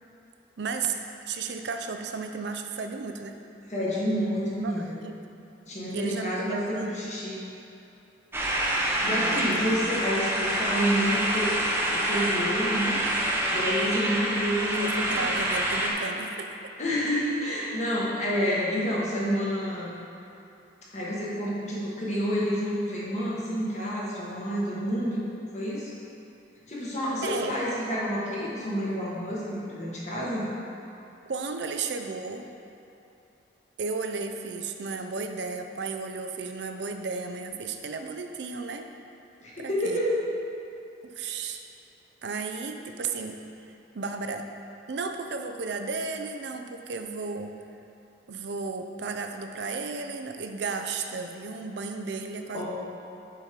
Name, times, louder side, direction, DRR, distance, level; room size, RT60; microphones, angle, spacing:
voice 1, 0.6-1.0 1.3-3.4 4.6-5.4 5.9-7.0 9.0-9.9 14.8-16.5 27.2-27.6 31.3-32.5 33.8-38.9 39.6-40.0 41.0-41.6 42.2-43.4 43.9-44.5 44.9-47.5 48.3-52.7, right 4 dB, 65° right, 6 dB, 0.5 m, -34 dB
voice 2, 3.7-4.9 5.7-7.4 9.0-11.6 11.9-13.0 13.5-15.3 16.8-19.9 20.9-25.2 25.5-25.9 26.7-30.5 39.4-40.3 52.5-52.7, equal, 40° left, -6 dB, 1.5 m, -29 dB
sound 1, 8.3-15.9, right 1 dB, 10° right, 0.7 m, -27 dB
7.4 x 4.4 x 5.1 m, 2.8 s
head